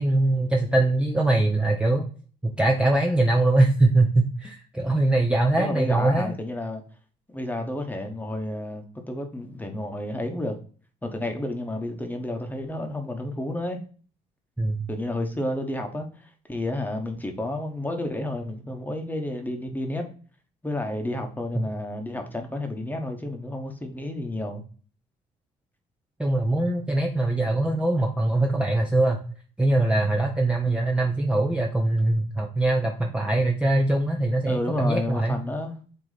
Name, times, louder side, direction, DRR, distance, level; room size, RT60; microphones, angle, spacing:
voice 1, 0.0-2.1 2.4-6.4 14.6-14.8 21.5-21.7 26.2-29.2 29.6-35.4, right 2 dB, 5° right, 1 dB, 0.7 m, -22 dB
voice 2, 5.6-6.8 7.3-10.6 11.0-13.8 14.9-16.1 16.5-20.1 20.6-24.6 30.7-30.9 34.4-35.7, left 1 dB, 10° left, 4 dB, 1.2 m, -31 dB
7.9 x 3.0 x 4.1 m, 0.41 s
cardioid pair, 110°, 17 cm